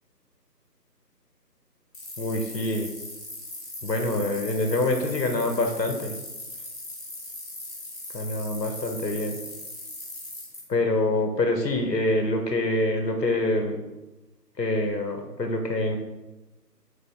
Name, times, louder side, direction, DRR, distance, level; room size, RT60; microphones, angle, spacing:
sound 1, 1.9-10.6, left 2 dB, 20° left, 1.9 m, -39 dB
voice 1, 2.2-2.9 3.8-6.2 8.1-9.3 10.7-13.8 14.6-16.0, left 2 dB, 75° left, 4 dB, 1.1 m, -25 dB
8.4 x 3.9 x 3.6 m, 1.1 s
figure-of-eight pair, 170°, 50 cm